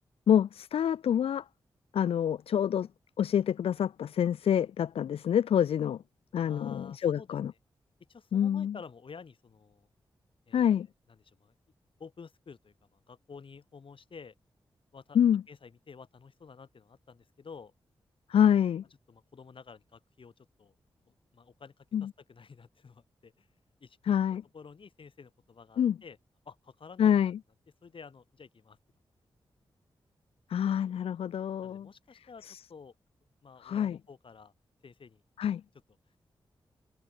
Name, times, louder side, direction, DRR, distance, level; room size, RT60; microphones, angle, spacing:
voice 1, 0.3-1.4 1.9-2.9 3.2-6.0 6.3-7.5 8.3-8.8 10.5-10.9 15.1-15.4 18.3-18.8 21.9-22.1 24.1-24.4 25.8-26.0 27.0-27.4 30.5-31.9 32.4-32.6 33.6-34.0 35.4-35.6, left 9 dB, 80° left, 0.5 m, -26 dB
voice 2, 6.4-7.3 8.1-9.9 10.5-10.8 11.3-11.5 12.0-14.3 14.9-15.2 15.5-17.7 19.1-20.7 21.1-23.5 23.8-24.2 24.5-26.2 26.5-27.2 27.8-28.8 31.6-32.9 33.4-34.5 34.8-35.2, left 5 dB, 60° left, 2.5 m, -51 dB
cardioid pair, 45°, 10 cm